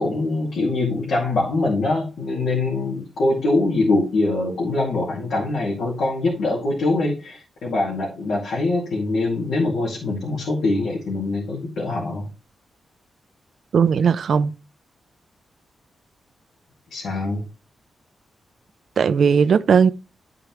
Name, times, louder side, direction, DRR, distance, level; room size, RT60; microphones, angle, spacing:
voice 1, 0.0-12.3 16.9-17.4, left 2 dB, 85° left, 2.2 m, -23 dB
voice 2, 13.7-14.5 19.0-19.9, right 6 dB, 60° right, 0.4 m, -17 dB
11.0 x 4.9 x 3.1 m
wide cardioid pair, 125°, 0 cm